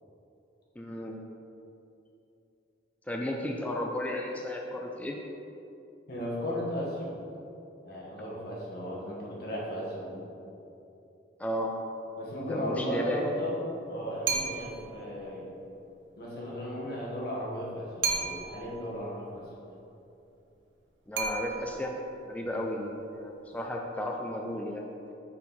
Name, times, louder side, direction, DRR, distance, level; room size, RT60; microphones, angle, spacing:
voice 1, 0.8-1.2 3.1-5.2 11.4-11.7 12.5-13.3 21.1-21.9 22.2-25.1, left 1 dB, 10° left, 0 dB, 0.3 m, -34 dB
voice 2, 6.1-7.2 7.8-10.3 12.2-13.6 13.9-15.5 16.2-19.5 22.4-22.6, equal, 55° left, -5 dB, 1.3 m, -35 dB
sound 1, 14.3-14.9 18.0-18.7 21.2-22.0, right 5 dB, 85° right, 0.7 m, -32 dB
4.5 x 4.2 x 5.3 m, 2.8 s
head